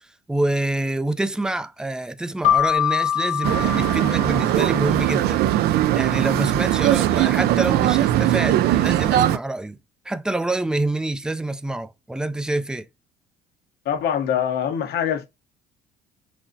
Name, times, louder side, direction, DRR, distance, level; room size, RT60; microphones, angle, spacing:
voice 1, 0.0-5.6 5.9-9.8 10.1-12.9, right 2 dB, 5° right, 0.3 m, -26 dB
Keyboard (musical), 2.4-5.0, left 10 dB, 45° left, 0.9 m, -24 dB
sound 1, 3.4-9.4, right 13 dB, 70° right, 0.4 m, -20 dB
voice 2, 13.8-15.2, left 9 dB, 70° left, 0.9 m, -23 dB
5.9 x 2.1 x 2.6 m
cardioid pair, 110°, 17 cm